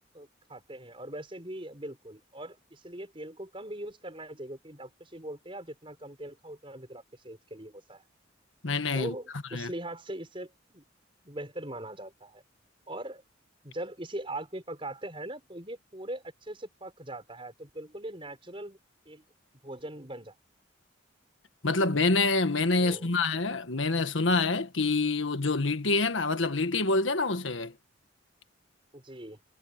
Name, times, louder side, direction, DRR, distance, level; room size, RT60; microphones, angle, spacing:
voice 1, 0.1-8.0 8.9-10.8 11.2-12.4 12.9-13.2 13.6-18.8 19.1-19.2 19.6-20.3 22.8-23.1 28.9-29.4, right 1 dB, 25° right, 6.1 m, -41 dB
voice 2, 8.6-9.1 9.5-9.7 21.6-27.7, left 3 dB, 75° left, 1.5 m, -26 dB
head